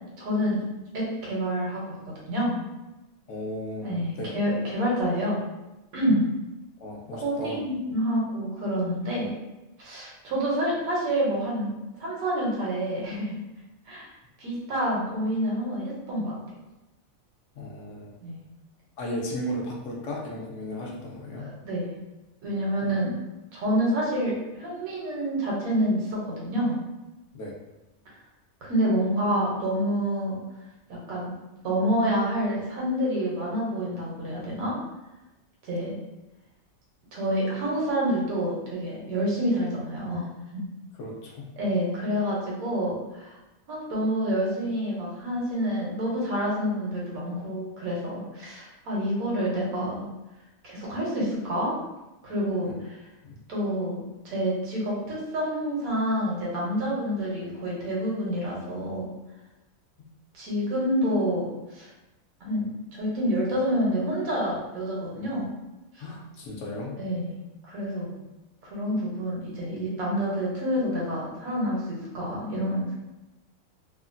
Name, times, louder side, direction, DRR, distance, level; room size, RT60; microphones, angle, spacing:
voice 1, 0.2-0.6 0.9-2.6 3.8-5.4 5.9-6.2 7.2-9.3 9.8-11.7 12.0-13.4 13.9-14.1 14.4-16.3 18.2-18.4 21.4-21.9 22.4-23.1 23.5-26.8 28.6-30.4 30.9-31.4 31.6-34.8 35.6-36.0 37.1-40.6 41.6-43.4 43.7-50.0 50.6-51.8 52.2-53.0 53.5-59.1 60.3-61.9 62.4-62.7 62.9-65.5 65.9-66.0 67.0-68.2 68.6-72.9, equal, 90° right, -5 dB, 1.3 m, -28 dB
voice 2, 3.3-4.4 6.1-6.2 6.8-7.6 17.5-18.1 19.0-21.5 22.8-22.9 27.3-27.5 41.0-41.5 52.6-52.8 53.2-53.4 60.0-60.1 66.0-67.0, equal, 70° left, -2 dB, 0.9 m, -35 dB
3.1 x 2.1 x 2.5 m, 1.0 s
omnidirectional pair, 1.4 m